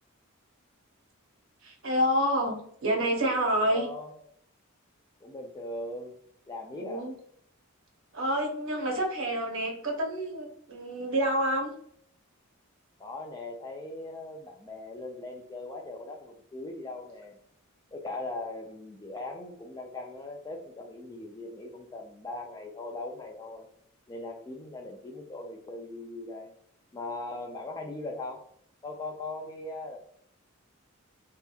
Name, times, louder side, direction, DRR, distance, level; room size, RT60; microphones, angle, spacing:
voice 1, 1.6-3.9 6.7-7.1 8.1-11.7, equal, 60° right, 2 dB, 0.7 m, -28 dB
voice 2, 3.7-4.1 5.2-6.1 6.5-7.1 13.0-17.4 17.9-23.7 24.1-26.5 26.9-28.4 28.8-30.0, left 2 dB, 15° left, 2 dB, 0.3 m, -39 dB
2.7 x 2.2 x 2.3 m, 0.65 s
head